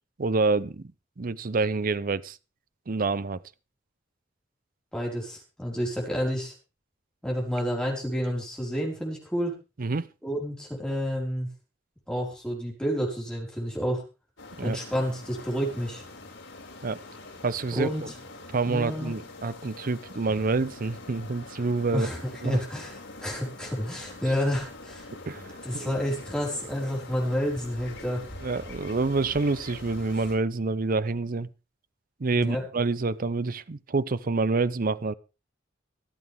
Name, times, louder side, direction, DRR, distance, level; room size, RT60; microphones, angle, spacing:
voice 1, 0.2-0.8 1.2-2.4 2.9-3.4 9.8-10.1 14.6-14.8 16.8-17.0 17.4-17.9 18.5-22.1 22.4-22.6 25.3-26.0 28.4-31.5 32.2-35.1, right 3 dB, 45° right, 0.6 m, -27 dB
voice 2, 4.9-6.5 7.2-9.6 10.2-11.5 12.1-14.0 14.6-16.0 17.7-18.1 18.6-19.1 21.9-22.2 22.4-25.1 25.6-28.2 32.3-32.6, equal, 5° left, 4.8 m, -30 dB
sound 1, 14.4-30.3, left 2 dB, 80° left, 5.3 m, -44 dB
25.0 x 8.3 x 3.6 m
head